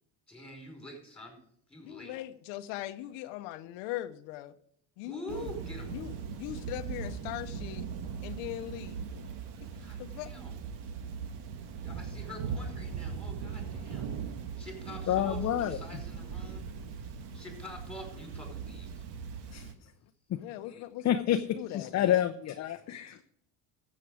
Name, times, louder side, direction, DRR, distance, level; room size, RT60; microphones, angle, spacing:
voice 1, 0.3-1.4 1.7-2.2 5.0-5.9 9.7-10.5 11.8-14.1 14.6-16.6 17.3-19.0, equal, ahead, 2 dB, 4.7 m, -46 dB
voice 2, 1.8-4.5 5.0-5.5 5.9-6.1 6.4-7.9 8.2-9.1 10.0-10.5 20.4-22.3, left 14 dB, 90° left, 9 dB, 0.9 m, -40 dB
Thunder / Rain, 5.3-19.7, right 6 dB, 65° right, 1.3 m, -39 dB
voice 3, 15.1-15.8 19.5-19.7 20.3-20.4 21.0-21.4 21.7-23.2, left 11 dB, 35° left, 7 dB, 0.7 m, -28 dB
13.5 x 7.6 x 4.8 m, 0.66 s
cardioid pair, 130°, 44 cm